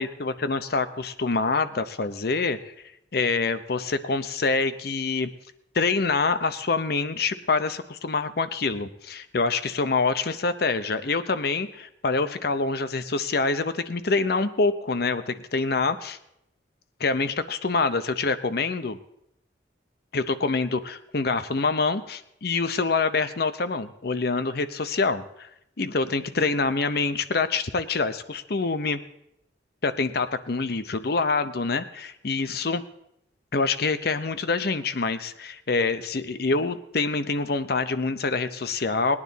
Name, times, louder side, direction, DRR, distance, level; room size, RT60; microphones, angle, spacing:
voice 1, 0.0-2.7 3.1-5.3 5.7-16.2 17.0-19.0 20.1-25.5 25.8-29.0 29.8-32.8 33.5-39.2, left 4 dB, 60° left, 12 dB, 0.7 m, -26 dB
19.0 x 9.8 x 4.0 m, 0.80 s
head